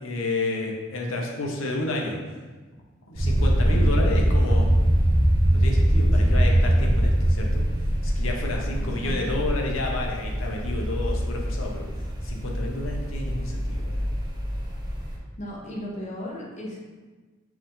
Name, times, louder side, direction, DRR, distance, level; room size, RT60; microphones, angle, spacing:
voice 1, 0.0-2.2 3.1-4.7 5.5-7.6 8.0-11.8 12.2-14.1, left 2 dB, 75° left, 0 dB, 0.8 m, -30 dB
sound 1, 3.2-15.2, equal, 20° right, 0.7 m, -23 dB
voice 2, 3.6-4.0 6.1-6.4 8.8-9.4 15.0-16.8, equal, 35° left, -2 dB, 0.7 m, -37 dB
4.7 x 2.6 x 3.7 m, 1.3 s
head